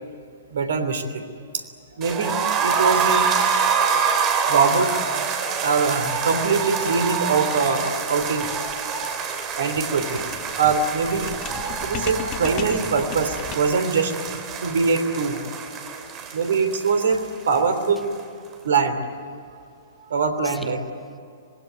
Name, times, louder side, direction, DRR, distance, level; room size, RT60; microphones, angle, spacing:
voice 1, 0.5-1.2 1.5-1.6 1.9-3.3 4.5-4.9 5.6-8.5 9.5-10.2 10.6-11.3 11.8-15.4 16.3-17.2 17.5-18.1 18.6-19.0 20.1-20.8, right 5 dB, 60° right, 8 dB, 3.2 m, -23 dB
sound 1, 2.0-17.9 18.1-18.2 18.5-18.6, right 6 dB, 25° right, 3.3 m, -26 dB
sound 2, 8.2-13.9, left 9 dB, 30° left, 1.3 m, -37 dB
voice 2, 14.2-14.9 15.2-16.6 16.9-17.0 17.4-17.6 17.9-18.0 20.4-20.7, equal, ahead, 11 dB, 0.7 m, -51 dB
26.0 x 21.0 x 9.4 m, 2.5 s
figure-of-eight pair, 110°, 0 cm